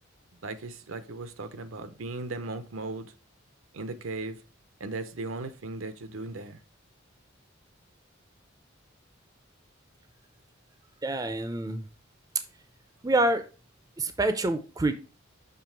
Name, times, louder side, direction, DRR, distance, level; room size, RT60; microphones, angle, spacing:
voice 1, 0.4-3.1 3.7-4.4 4.8-6.6, right 3 dB, 80° right, 0.7 m, -37 dB
voice 2, 11.0-11.8 13.0-13.4 14.0-14.9, right 2 dB, 20° right, 0.4 m, -26 dB
6.9 x 3.2 x 4.4 m
head